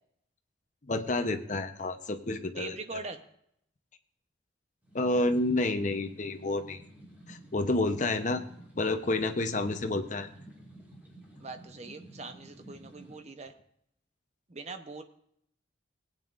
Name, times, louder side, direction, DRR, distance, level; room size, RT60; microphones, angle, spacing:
voice 1, 0.9-3.0 4.9-6.8 7.3-8.4 8.8-10.3, left 2 dB, 40° left, 7 dB, 0.8 m, -29 dB
voice 2, 2.6-3.2 11.4-13.5 14.5-15.0, right 3 dB, 35° right, 7 dB, 0.8 m, -42 dB
sound 1, 4.8-13.2, right 1 dB, 10° right, 2.3 m, -52 dB
18.5 x 9.0 x 2.5 m, 0.71 s
head